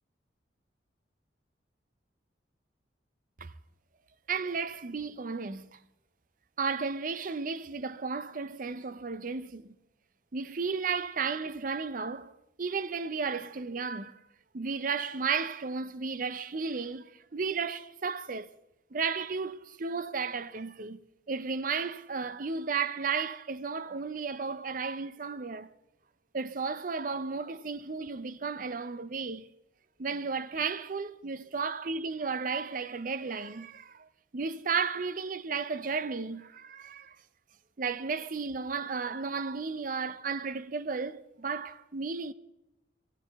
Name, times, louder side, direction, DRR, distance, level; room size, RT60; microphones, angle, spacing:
voice 1, 4.3-5.8 6.6-9.7 10.3-12.3 12.6-14.2 14.5-18.5 18.9-21.0 21.3-25.7 26.3-29.5 30.0-34.1 34.3-37.2 37.8-42.3, right 5 dB, 45° right, 0.6 m, -34 dB
18.0 x 16.0 x 3.5 m
head